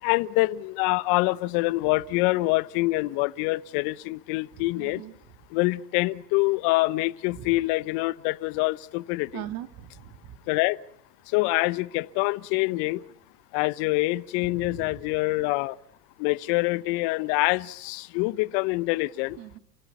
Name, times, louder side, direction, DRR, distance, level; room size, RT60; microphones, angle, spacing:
voice 1, 0.0-5.0 5.5-9.4 10.5-10.8 11.3-13.0 13.5-15.8 16.2-19.4, left 21 dB, 50° left, 0.9 m, -25 dB
voice 2, 4.8-5.1 7.3-7.6 9.3-10.4 14.5-15.0 19.4-19.6, right 11 dB, 45° right, 2.5 m, -40 dB
29.0 x 16.0 x 9.6 m
hypercardioid pair, 105°, 48 cm